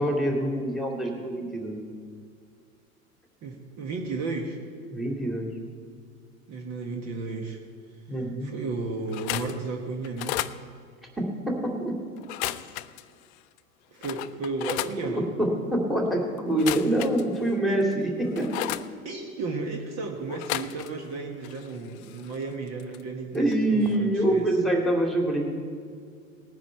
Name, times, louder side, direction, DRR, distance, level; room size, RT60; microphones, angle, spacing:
voice 1, 0.0-1.8 4.9-5.5 8.1-8.5 11.2-12.0 15.0-18.7 23.3-25.5, right 1 dB, ahead, 1 dB, 2.3 m, -25 dB
voice 2, 3.4-4.6 6.5-7.6 8.4-10.4 13.9-15.3 19.0-24.6, right 3 dB, 40° right, 3 dB, 1.4 m, -33 dB
sound 1, 9.1-9.6 10.0-10.6 12.2-13.0 13.6-13.7 14.0-15.0 16.5-17.5 17.9-18.9 20.3-21.1 21.4-23.0 23.4-23.6 23.8-24.0, left 15 dB, 55° left, 0.6 m, -34 dB
19.0 x 9.7 x 4.5 m, 2.2 s
figure-of-eight pair, 80°, 42 cm